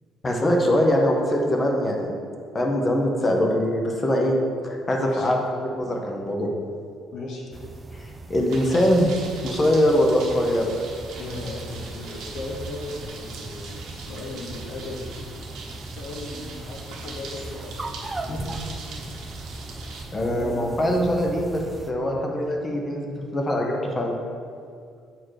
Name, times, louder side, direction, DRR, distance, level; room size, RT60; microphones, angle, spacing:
voice 1, 0.2-2.1 2.5-4.3 4.6-6.5 8.3-9.1 9.4-10.7 18.3-18.4 20.1-24.1, equal, 20° left, 1 dB, 0.8 m, -22 dB
voice 2, 5.0-5.3 7.1-7.4 11.2-15.4 15.8-17.9 18.2-18.4 20.3-20.7 22.0-22.2, left 2 dB, 65° left, -2 dB, 1.0 m, -37 dB
sound 1, 7.5-21.9, right 2 dB, 15° right, 0.3 m, -38 dB
sound 2, 8.5-20.0, right 4 dB, 70° right, 1.2 m, -41 dB
7.4 x 4.4 x 4.7 m, 2.3 s
cardioid pair, 160°, 0 cm